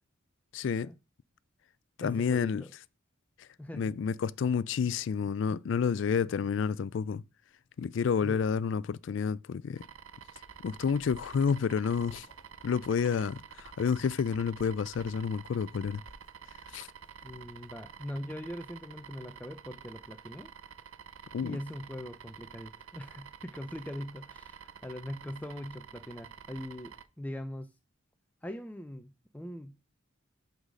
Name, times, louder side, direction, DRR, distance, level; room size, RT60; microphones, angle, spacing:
voice 1, 0.5-0.9 2.0-2.6 3.7-7.2 7.8-9.8 10.6-12.3 12.6-16.0 16.7-16.9 21.3-21.6, left 6 dB, 60° left, 0.3 m, -29 dB
voice 2, 2.0-2.7 3.6-4.0 8.2-8.4 17.2-20.5 21.4-27.7 28.4-29.8, left 1 dB, 5° left, 0.5 m, -41 dB
sound 1, 9.8-27.1, right 7 dB, 75° right, 0.6 m, -50 dB
sound 2, 10.4-17.8, left 1 dB, 40° left, 1.7 m, -59 dB
8.1 x 4.0 x 6.2 m
head